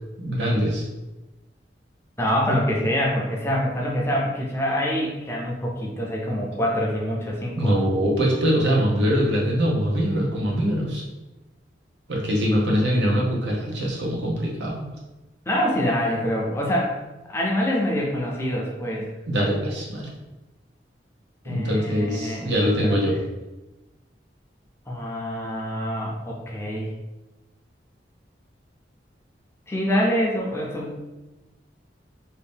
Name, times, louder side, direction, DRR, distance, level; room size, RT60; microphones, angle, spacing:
voice 1, 0.2-0.8 7.5-11.0 12.1-14.8 19.0-20.1 21.5-23.2, equal, 75° right, -2 dB, 0.8 m, -23 dB
voice 2, 2.2-7.8 15.5-17.0 17.3-19.1 21.4-22.5 22.8-23.0 24.9-26.9 29.7-31.0, equal, 15° left, -3 dB, 0.5 m, -25 dB
2.8 x 2.6 x 3.4 m, 1.1 s
head